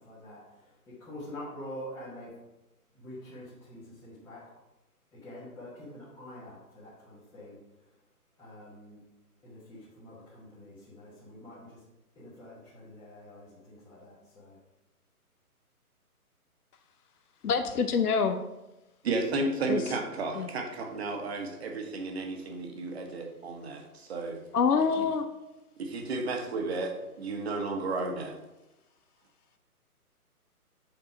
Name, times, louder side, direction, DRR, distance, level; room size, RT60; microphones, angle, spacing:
voice 1, 0.0-2.3 2.9-4.6 5.1-7.9 8.4-9.0 9.4-11.8 12.1-14.6, left 1 dB, 5° left, -10 dB, 1.2 m, -46 dB
voice 2, 17.4-18.4 19.7-19.8 20.4-20.5 24.5-25.3, left 5 dB, 75° left, 7 dB, 0.8 m, -26 dB
voice 3, 19.0-24.4 25.0-25.1 25.8-28.3, right 3 dB, 45° right, 3 dB, 1.5 m, -33 dB
7.0 x 5.2 x 4.3 m, 0.98 s
figure-of-eight pair, 145°, 45 cm